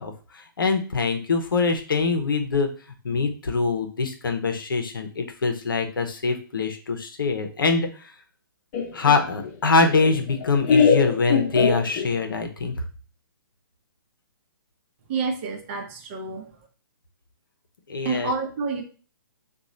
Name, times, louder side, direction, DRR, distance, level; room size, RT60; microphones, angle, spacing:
voice 1, 0.0-2.7 3.0-7.9 8.9-12.8 17.9-18.3, left 4 dB, 70° left, 5 dB, 0.7 m, -24 dB
Laughter, 8.7-12.4, left 6 dB, 35° left, 0.8 m, -23 dB
voice 2, 15.1-16.6 18.0-18.8, right 4 dB, 35° right, 3 dB, 0.8 m, -29 dB
2.9 x 2.3 x 3.7 m, 0.38 s
figure-of-eight pair, 130°, 12 cm